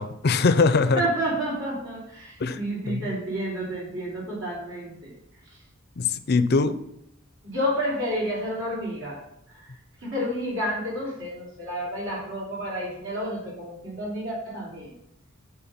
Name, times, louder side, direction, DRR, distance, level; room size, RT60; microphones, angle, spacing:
voice 1, 0.0-1.0 2.4-3.1 6.0-6.8, left 4 dB, 50° left, 12 dB, 0.5 m, -22 dB
voice 2, 1.0-5.1 7.4-9.2 9.6-9.7 10.0-14.9, equal, 60° right, -4 dB, 3.1 m, -30 dB
9.1 x 3.7 x 5.7 m, 0.79 s
head